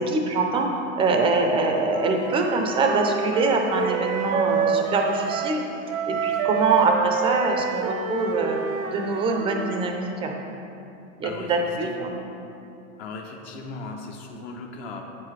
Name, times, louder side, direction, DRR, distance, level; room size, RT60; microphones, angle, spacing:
voice 1, 0.0-5.6 6.1-8.6 8.8-10.4 11.2-12.2, right 3 dB, 15° right, 3 dB, 0.4 m, -24 dB
Wind instrument woodwind instrument, 1.9-5.6 5.9-9.9, right 6 dB, 80° right, 0.8 m, -28 dB
voice 2, 11.2-12.2 13.0-15.0, left 3 dB, 55° left, 2 dB, 0.9 m, -37 dB
8.7 x 7.3 x 3.2 m, 2.7 s
supercardioid pair, 140°, 41 cm